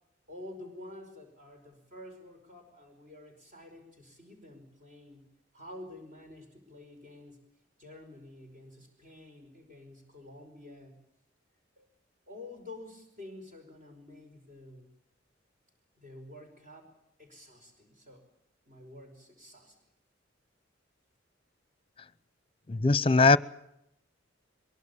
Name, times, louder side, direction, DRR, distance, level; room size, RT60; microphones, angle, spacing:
voice 1, 0.3-5.3 5.5-7.5 7.8-11.0 11.8-11.9 12.3-14.9 16.0-16.9 17.2-18.3 18.7-19.8, left 1 dB, 40° right, 5.5 m, -49 dB
voice 2, 22.7-23.4, left 3 dB, 30° left, 0.8 m, -20 dB
23.0 x 23.0 x 7.2 m
head